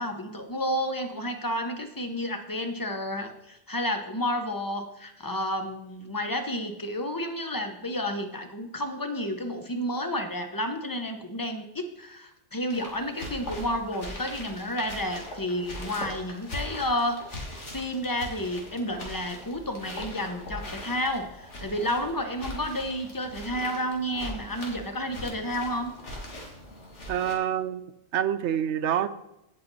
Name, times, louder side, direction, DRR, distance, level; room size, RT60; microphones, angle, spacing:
voice 1, 0.0-17.2 17.7-25.9, equal, 20° left, 6 dB, 0.8 m, -31 dB
sound 1, 12.7-27.3, left 1 dB, 75° left, 2.3 m, -40 dB
voice 2, 27.1-27.8 28.1-29.1, right 10 dB, 75° right, 12 dB, 0.9 m, -26 dB
16.5 x 5.8 x 4.1 m, 0.86 s
omnidirectional pair, 1.2 m